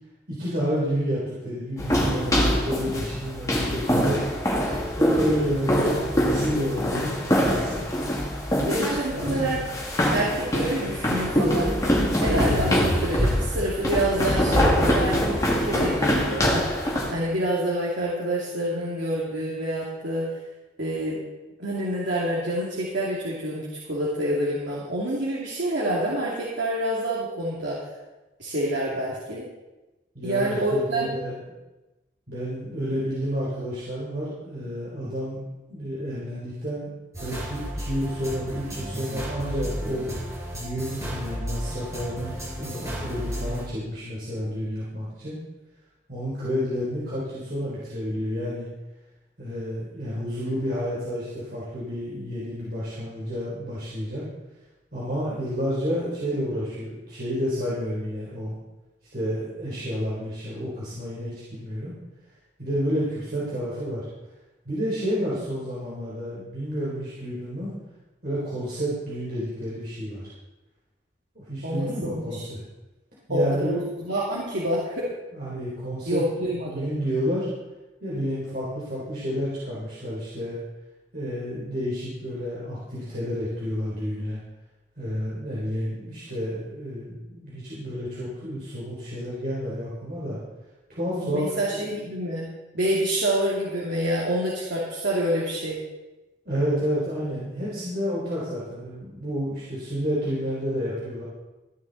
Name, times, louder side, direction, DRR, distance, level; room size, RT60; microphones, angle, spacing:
voice 1, 0.3-4.2 4.5-7.8 8.6-9.4 30.1-31.3 32.3-35.4 35.7-36.9 37.2-40.1 40.5-45.4 46.1-48.7 49.4-54.2 54.9-58.6 59.1-62.0 62.6-64.1 64.6-67.7 68.2-70.2 71.4-72.6 73.3-74.1 75.3-77.5 78.0-80.6 81.1-84.4 85.0-90.4 90.9-92.0 96.5-101.2, equal, 55° right, -8 dB, 3.9 m, -30 dB
sound 1, 1.8-17.1, equal, 20° left, 2.2 m, -24 dB
voice 2, 8.6-9.6 10.1-11.7 12.2-20.3 20.8-21.2 21.6-27.8 28.4-29.5 30.2-31.1 71.6-72.4 73.3-75.1 76.1-76.8 91.2-92.5 92.7-95.8, right 1 dB, 80° right, -6 dB, 2.6 m, -27 dB
sound 2, 37.1-43.7, equal, 15° right, 5.2 m, -33 dB
14.5 x 10.5 x 4.1 m, 1.1 s
head